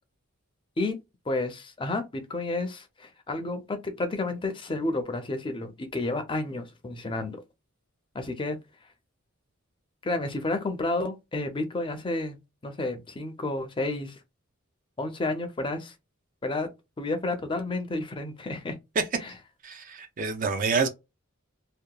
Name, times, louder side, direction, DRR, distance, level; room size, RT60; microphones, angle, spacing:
voice 1, 1.3-7.4 8.1-8.6 10.0-12.4 12.6-14.2 15.0-15.9 16.4-16.7 17.0-18.8 19.2-19.3, left 2 dB, 25° left, 0.5 m, -31 dB
voice 2, 19.6-20.9, right 4 dB, 40° right, 0.4 m, -27 dB
2.8 x 2.2 x 2.2 m
head